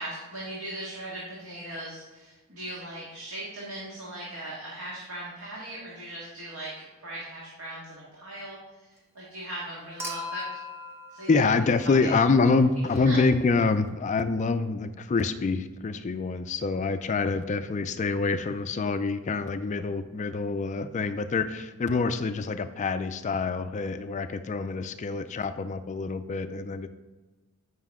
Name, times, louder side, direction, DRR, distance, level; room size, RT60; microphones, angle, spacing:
voice 1, 0.0-10.5 11.1-11.3 12.0-12.1 12.9-13.2, right 1 dB, 70° right, -6 dB, 1.8 m, -39 dB
Human group actions / Chink clink / Liquid, 10.0-12.4 13.9-14.0, left 2 dB, 10° right, 0.8 m, -39 dB
voice 2, 11.3-26.9, left 4 dB, 35° left, 10 dB, 0.3 m, -26 dB
9.3 x 5.8 x 3.6 m, 1.1 s
head